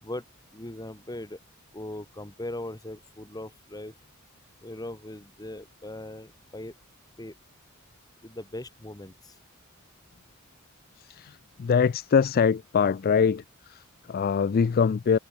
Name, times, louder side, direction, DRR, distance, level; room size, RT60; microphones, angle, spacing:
voice 1, 0.5-1.4 1.7-3.9 4.6-6.7 7.2-7.4 8.2-9.4, left 1 dB, 20° left, 1.8 m, -39 dB
voice 2, 11.0-15.2, left 6 dB, 45° left, 0.3 m, -24 dB
head